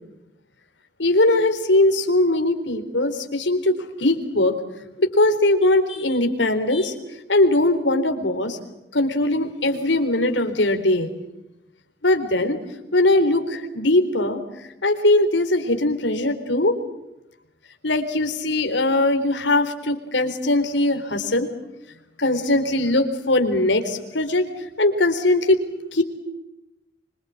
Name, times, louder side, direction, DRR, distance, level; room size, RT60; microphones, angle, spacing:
voice 1, 1.0-4.5 5.0-6.9 7.3-8.6 8.9-11.1 12.0-12.6 12.9-14.4 14.8-16.8 17.8-21.5 22.2-24.4 24.8-25.6 25.9-26.0, left 2 dB, 80° left, 7 dB, 4.1 m, -20 dB
26.5 x 25.5 x 8.6 m, 0.91 s
head